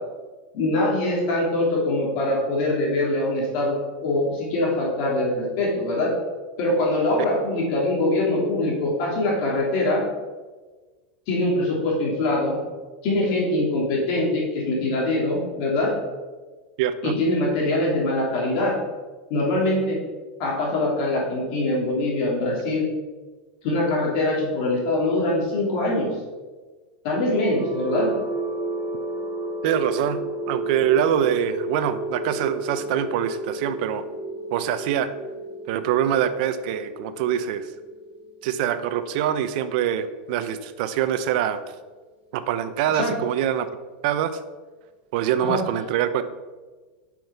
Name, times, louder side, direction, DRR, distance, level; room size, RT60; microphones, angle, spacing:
voice 1, 0.5-3.8 4.0-6.1 6.6-10.0 11.3-12.6 13.0-16.0 17.0-18.7 19.3-20.0 20.4-22.9 23.6-26.2 27.0-28.1 42.9-43.2 45.4-45.6, left 2 dB, 50° left, -3 dB, 3.0 m, -23 dB
voice 2, 16.8-17.1 29.6-34.0 34.5-35.1 35.7-37.7 38.4-41.6 42.3-43.7 44.0-44.3 45.1-46.2, right 10 dB, 60° right, 12 dB, 0.8 m, -24 dB
sound 1, 27.4-41.3, right 1 dB, 25° right, 1.2 m, -33 dB
8.5 x 6.2 x 6.8 m, 1.3 s
supercardioid pair, 145°, 5 cm